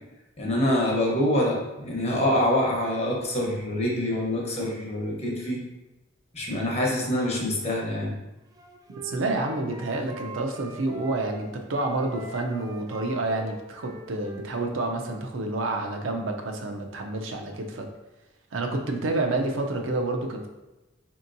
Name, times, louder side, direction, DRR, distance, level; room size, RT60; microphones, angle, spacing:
voice 1, 0.4-5.6 6.3-8.2, left 1 dB, 35° left, -3 dB, 0.9 m, -25 dB
Wind instrument woodwind instrument, 8.5-11.4 11.7-15.2, right 1 dB, 20° right, 0.4 m, -43 dB
voice 2, 9.0-17.9 18.5-20.5, right 2 dB, 75° right, 3 dB, 0.5 m, -29 dB
4.3 x 2.8 x 2.6 m, 1.0 s
head